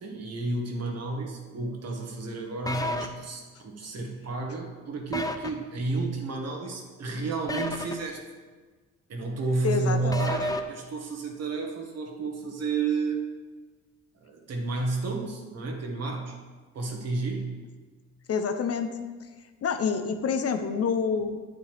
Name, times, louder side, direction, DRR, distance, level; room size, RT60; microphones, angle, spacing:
voice 1, 0.0-8.2 9.1-13.2 14.2-16.4 16.7-17.6, right 3 dB, 55° right, 1 dB, 1.7 m, -31 dB
sound 1, 2.7-3.1 5.1-5.5 7.5-7.9 10.1-10.6, left 2 dB, 10° left, 0.7 m, -30 dB
voice 2, 9.6-10.3 18.3-18.9 19.2-19.3 19.6-21.4, left 6 dB, 50° left, 8 dB, 0.8 m, -28 dB
9.3 x 9.3 x 3.5 m, 1.4 s
cardioid pair, 90°, 30 cm